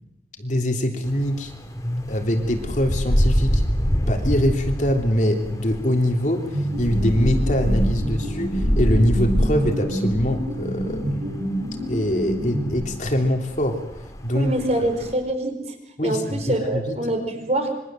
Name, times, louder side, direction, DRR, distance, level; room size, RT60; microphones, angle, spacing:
voice 1, 0.4-1.5 2.1-3.6 4.1-11.5 11.9-13.8 14.2-14.5 16.0-17.0, equal, 45° left, 4 dB, 3.2 m, -23 dB
sound 1, 1.0-15.1, equal, 20° left, 3.0 m, -26 dB
sound 2, 6.5-13.2, equal, 85° right, 7.2 m, -28 dB
voice 2, 14.3-15.7 16.0-17.7, right 1 dB, 35° right, 6 dB, 4.8 m, -25 dB
27.0 x 23.5 x 7.8 m, 0.89 s
head